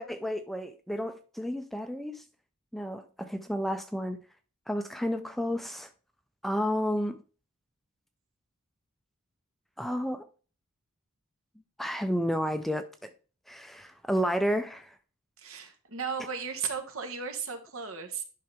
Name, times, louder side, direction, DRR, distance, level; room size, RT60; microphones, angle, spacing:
voice 1, 0.0-2.2 2.7-4.2 4.7-5.9 6.4-7.2 9.8-10.3 11.8-13.1 13.5-14.9, equal, ahead, 0.4 m, -31 dB
voice 2, 15.4-18.2, right 6 dB, 70° right, 1.3 m, -35 dB
10.5 x 5.5 x 3.4 m
head